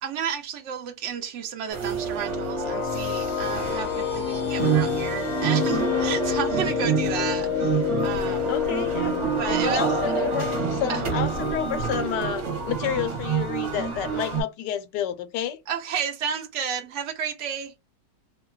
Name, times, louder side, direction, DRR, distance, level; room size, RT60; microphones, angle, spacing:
voice 1, 0.0-8.5 9.4-9.8 10.9-11.0 15.7-17.7, right 7 dB, 90° right, 0.6 m, -32 dB
sound 1, 1.7-14.4, right 7 dB, 50° right, 1.0 m, -28 dB
sound 2, 1.9-12.7, left 9 dB, 60° left, 0.8 m, -29 dB
voice 2, 8.3-9.1 9.5-15.6, left 10 dB, 90° left, 1.2 m, -30 dB
2.8 x 2.2 x 2.2 m
omnidirectional pair, 1.8 m